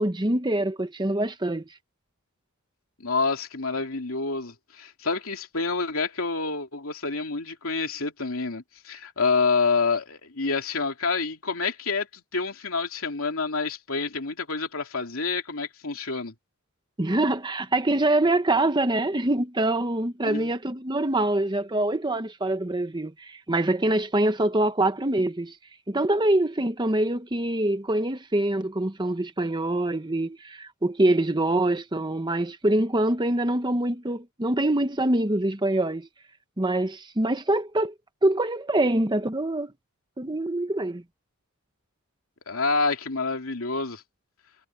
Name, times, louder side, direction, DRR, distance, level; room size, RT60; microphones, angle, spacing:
voice 1, 0.0-1.7 17.0-25.6 25.9-36.1 36.6-37.9 38.2-39.7 40.2-41.0, right 1 dB, 20° right, 1.1 m, -24 dB
voice 2, 3.0-16.3 20.2-20.5 42.5-44.0, left 4 dB, 70° left, 3.3 m, -28 dB
head